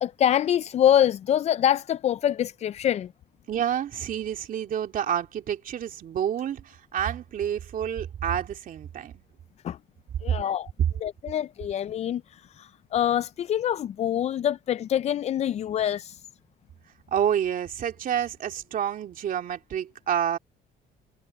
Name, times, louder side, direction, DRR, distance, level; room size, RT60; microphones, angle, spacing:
voice 1, 0.0-3.1 9.6-9.8 10.2-10.7 11.0-16.2, left 10 dB, 40° left, 0.4 m, -25 dB
voice 2, 3.5-9.1 17.1-20.4, right 9 dB, 55° right, 2.7 m, -29 dB
cardioid pair, 110°, 17 cm